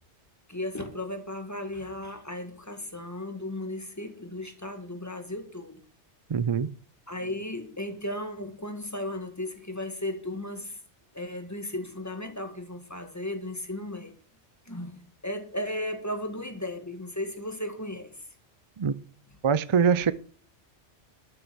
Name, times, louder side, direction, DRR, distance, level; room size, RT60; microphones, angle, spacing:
voice 1, 0.5-5.8 7.1-10.8 11.1-14.1 14.7-18.2, left 1 dB, 15° left, 1.8 m, -35 dB
voice 2, 6.3-6.7 18.8-18.9 19.4-20.1, right 6 dB, 40° right, 0.4 m, -23 dB
12.5 x 6.9 x 6.2 m
omnidirectional pair, 1.2 m